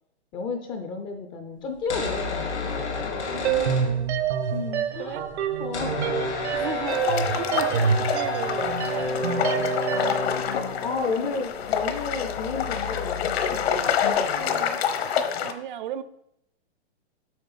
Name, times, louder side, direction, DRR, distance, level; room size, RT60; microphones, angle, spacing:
voice 1, 0.3-2.4 2.8-3.3 4.5-5.2 5.6-6.4 7.0-7.2 9.9-14.7, left 4 dB, 15° left, 6 dB, 0.4 m, -33 dB
sound 1, 1.7-4.5 4.8-4.9 5.0-14.5, left 3 dB, 90° left, 2.9 m, -32 dB
voice 2, 3.3-4.2 5.0-5.4 6.5-10.2 11.1-11.4 14.3-16.0, right 10 dB, 45° right, 14 dB, 0.6 m, -37 dB
sound 2, 3.4-10.3, right 7 dB, 75° right, 1.1 m, -27 dB
sound 3, 6.9-15.5, left 8 dB, 65° left, 1.1 m, -27 dB
7.9 x 5.4 x 5.6 m, 0.77 s
hypercardioid pair, 145°, 34 cm